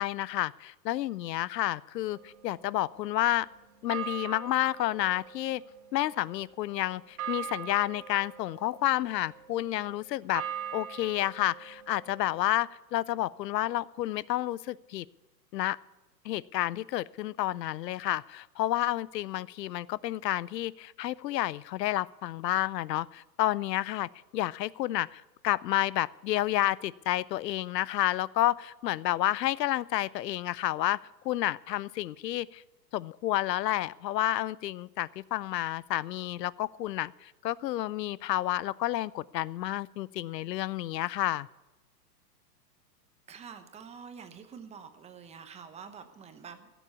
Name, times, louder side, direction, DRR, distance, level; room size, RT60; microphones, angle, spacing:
voice 1, 0.0-3.5 3.8-5.6 5.9-10.4 10.7-15.1 15.5-15.8 16.2-32.6 32.9-41.5, left 14 dB, 75° left, 22 dB, 0.6 m, -30 dB
sound 1, 2.1-3.4 3.9-12.5, right 9 dB, 60° right, 2.4 m, -43 dB
voice 2, 43.3-46.7, right 6 dB, 15° right, 8 dB, 0.9 m, -47 dB
16.0 x 7.0 x 8.4 m, 1.1 s
hypercardioid pair, 135°, 50 cm